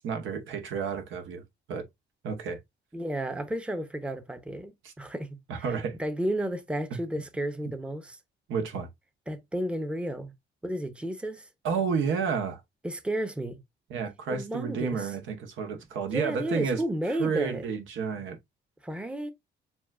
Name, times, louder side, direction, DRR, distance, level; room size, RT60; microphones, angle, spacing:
voice 1, 0.0-1.4 1.7-1.8 2.2-2.6 4.8-4.9 5.5-5.9 8.5-8.9 11.6-12.6 13.9-16.8 17.1-18.4, right 6 dB, 80° right, 1.0 m, -30 dB
voice 2, 2.9-8.2 9.3-10.3 10.6-11.5 12.8-13.6 14.3-15.2 16.1-17.7 18.8-19.3, right 1 dB, 5° right, 0.7 m, -33 dB
7.0 x 2.3 x 2.4 m
cardioid pair, 90°, 20 cm